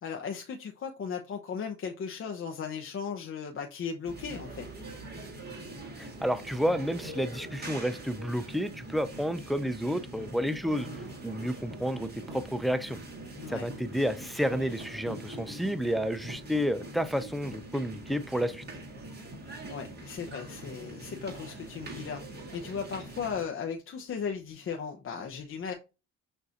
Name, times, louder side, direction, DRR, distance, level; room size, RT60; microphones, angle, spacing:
voice 1, 0.0-4.7 13.4-13.7 19.7-22.2 22.5-25.7, left 6 dB, 45° left, 0.7 m, -36 dB
sound 1, 4.0-23.4, right 1 dB, 35° right, 1.6 m, -43 dB
voice 2, 6.0-13.0 13.5-18.6, equal, ahead, 0.5 m, -31 dB
6.2 x 2.6 x 2.8 m
cardioid pair, 90°, 30 cm